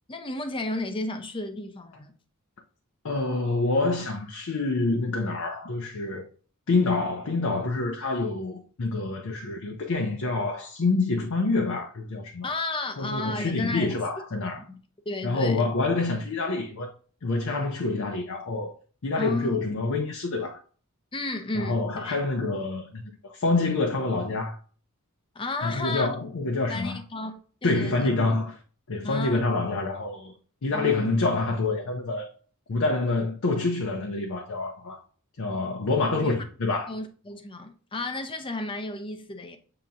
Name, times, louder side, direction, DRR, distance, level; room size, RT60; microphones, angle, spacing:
voice 1, 0.1-2.1 12.4-13.9 14.6-14.8 15.1-15.7 19.2-19.6 21.1-22.2 25.3-26.2 26.7-28.1 29.0-29.4 30.7-31.1 36.2-36.3 36.9-39.6, left 2 dB, 25° left, 0.6 m, -33 dB
voice 2, 3.0-6.3 6.7-12.5 13.0-14.6 15.2-16.9 17.2-18.8 19.0-20.6 21.5-24.6 25.6-27.0 27.6-28.6 28.9-30.3 30.6-32.3 32.7-35.0 35.4-36.9, left 3 dB, 70° left, 0.6 m, -27 dB
7.0 x 2.9 x 2.5 m
head